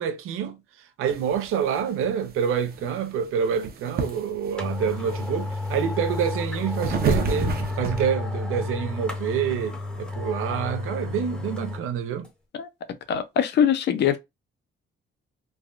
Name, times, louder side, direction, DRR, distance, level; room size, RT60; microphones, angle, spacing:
voice 1, 0.0-12.3, right 8 dB, 85° right, 0.6 m, -27 dB
sound 1, 1.1-8.0, right 4 dB, 45° right, 0.6 m, -31 dB
sound 2, 4.1-4.2 4.6-11.8 12.2-12.3, left 2 dB, 5° left, 0.7 m, -31 dB
voice 2, 13.1-14.2, left 9 dB, 55° left, 0.5 m, -22 dB
3.2 x 2.2 x 2.4 m
cardioid pair, 145°, 21 cm